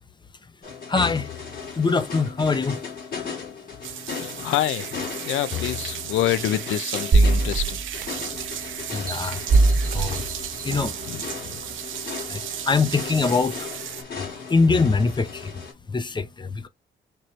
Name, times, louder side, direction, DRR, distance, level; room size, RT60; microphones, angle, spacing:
sound 1, 0.6-15.7, left 6 dB, 50° left, 2.9 m, -36 dB
voice 1, 0.9-1.3 1.8-2.8 8.9-9.4 9.9-10.2 10.6-10.9 12.3-12.4 12.7-13.6 14.5-15.5 15.9-16.7, left 4 dB, 25° left, 0.7 m, -23 dB
sound 2, 3.8-14.0, right 11 dB, 75° right, 0.8 m, -35 dB
voice 2, 4.1-7.8 11.0-11.7, left 13 dB, 80° left, 0.5 m, -27 dB
sound 3, 7.1-8.4 8.9-11.0 11.6-11.7, right 3 dB, 45° right, 1.1 m, -21 dB
4.6 x 2.6 x 3.1 m
cardioid pair, 90°, 20 cm